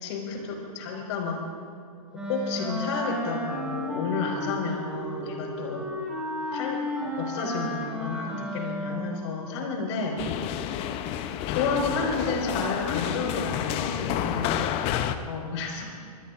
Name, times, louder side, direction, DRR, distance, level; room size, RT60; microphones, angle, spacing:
voice 1, 0.0-1.4 2.1-5.8 6.5-10.8 11.5-14.5 15.3-15.8, left 4 dB, 45° left, 1 dB, 5.0 m, -31 dB
Wind instrument woodwind instrument, 2.1-9.3, left 1 dB, 5° right, 5.2 m, -33 dB
sound 1, 10.2-15.2, left 10 dB, 30° left, 0.8 m, -29 dB
26.0 x 20.5 x 2.6 m, 2.5 s
hypercardioid pair, 130°, 20 cm